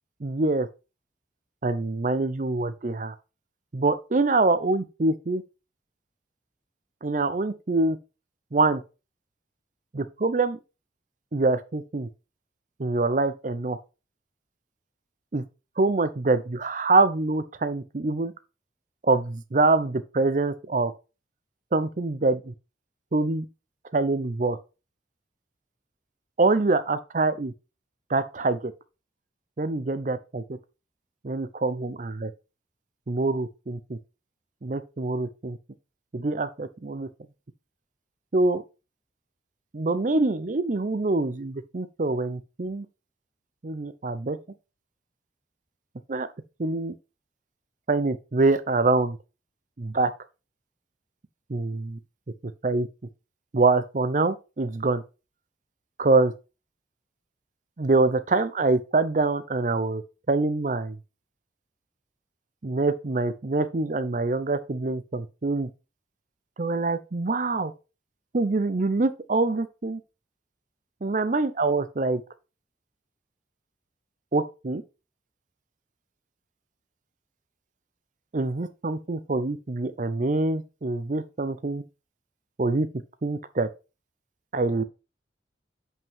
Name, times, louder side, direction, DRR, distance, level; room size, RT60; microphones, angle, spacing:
voice 1, 0.2-0.7 1.6-3.1 3.7-5.4 7.0-8.0 8.5-8.8 9.9-10.6 11.3-12.1 12.8-13.8 15.3-15.4 15.8-18.3 19.0-20.9 21.7-22.5 23.1-23.5 23.9-24.6 26.4-27.5 28.1-28.7 29.6-30.4 31.2-32.3 33.1-34.0 34.6-35.6 36.1-37.1 38.3-38.6 39.7-42.9 43.6-44.4 46.1-46.3 46.6-46.9 47.9-49.2 49.8-50.1 51.5-52.0 52.4-52.9 53.5-55.0 56.0-56.3 57.8-60.0 60.3-61.0 62.6-65.7 66.6-67.7 68.3-70.0 71.0-72.2 74.3-74.8 78.3-81.8 82.6-82.9 83.2-83.7 84.5-84.8, right 3 dB, 45° right, 0.6 m, -25 dB
7.5 x 5.5 x 3.5 m
head